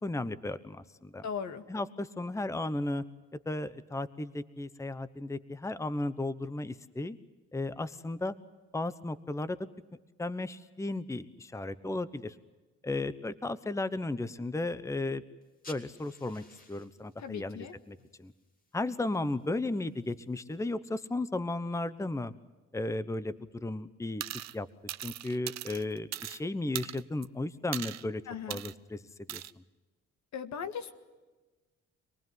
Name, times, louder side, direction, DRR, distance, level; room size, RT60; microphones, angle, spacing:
voice 1, 0.0-1.2 1.7-3.0 3.5-7.2 7.5-8.3 8.7-9.6 10.2-12.4 12.8-15.2 15.7-18.3 18.7-22.3 22.7-24.2 24.5-24.7 25.0-28.2 28.5-29.0 29.3-29.4, left 2 dB, 10° left, 15 dB, 1.0 m, -34 dB
voice 2, 1.2-1.6 17.2-17.7 28.3-28.6 30.3-30.9, left 7 dB, 70° left, 9 dB, 2.0 m, -38 dB
sound 1, 15.4-20.6, left 2 dB, 30° left, 3.6 m, -58 dB
sound 2, 24.2-24.6 24.9-26.4 26.8-27.3 27.7-28.0 28.5-28.7 29.3-29.5, right 12 dB, 60° right, 0.8 m, -39 dB
26.0 x 19.5 x 9.4 m, 1.2 s
cardioid pair, 90°, 30 cm